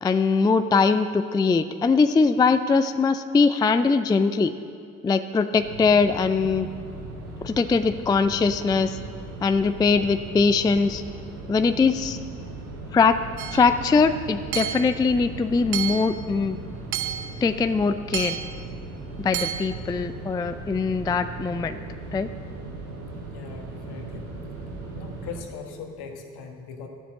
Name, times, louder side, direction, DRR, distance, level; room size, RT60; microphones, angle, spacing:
voice 1, 0.0-4.5 5.0-6.7 7.4-9.0 9.4-11.0 11.5-12.2 12.9-13.2 13.5-16.6 17.4-18.4 19.2-21.8 22.1-22.3, left 4 dB, 10° left, 11 dB, 0.3 m, -21 dB
sound 1, 5.5-25.4, right 2 dB, 85° right, 1.5 m, -38 dB
Hammer / Chink clink, 13.4-13.7 14.5-15.0 15.7-16.2 16.9-17.4 18.1-18.6 19.3-19.7, right 11 dB, 65° right, 0.8 m, -30 dB
voice 2, 23.3-24.3 24.9-26.9, left 5 dB, 60° left, 4 dB, 1.5 m, -39 dB
12.0 x 7.2 x 7.3 m, 2.3 s
figure-of-eight pair, 40°, 43 cm